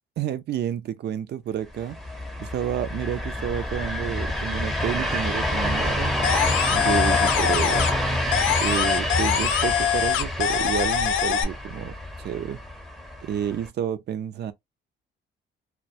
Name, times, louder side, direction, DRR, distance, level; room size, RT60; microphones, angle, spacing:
voice 1, 0.2-2.0 2.4-6.2 6.7-7.9 8.6-12.6 13.2-14.5, right 10 dB, 60° right, 0.5 m, -30 dB
sound 1, 1.7-13.7, left 1 dB, ahead, 0.6 m, -27 dB
sound 2, 6.2-8.0 8.3-11.4, left 9 dB, 90° left, 0.5 m, -23 dB
2.2 x 2.2 x 2.6 m
cardioid pair, 90°, 20 cm